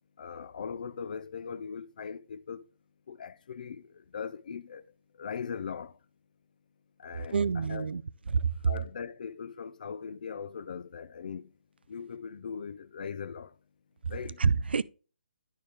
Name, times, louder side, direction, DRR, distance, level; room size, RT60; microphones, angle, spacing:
voice 1, 0.2-2.6 3.1-4.8 5.2-5.9 7.0-7.9 8.6-11.5 11.9-13.5 14.1-14.4, left 6 dB, 50° left, 0.5 m, -40 dB
voice 2, 7.3-8.0 8.3-8.5 14.4-14.8, right 5 dB, 80° right, 0.4 m, -26 dB
11.0 x 4.5 x 3.3 m
hypercardioid pair, 165°, 5 cm